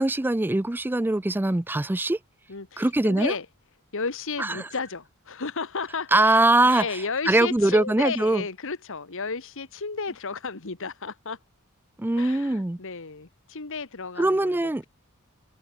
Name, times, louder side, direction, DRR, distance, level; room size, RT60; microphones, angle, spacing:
voice 1, 0.0-2.2 2.8-3.3 4.4-4.6 6.1-8.4 12.0-12.8 14.2-14.8, right 2 dB, 10° right, 0.4 m, -22 dB
voice 2, 2.5-3.5 3.9-11.4 12.1-14.9, left 4 dB, 65° left, 1.6 m, -33 dB
open air
head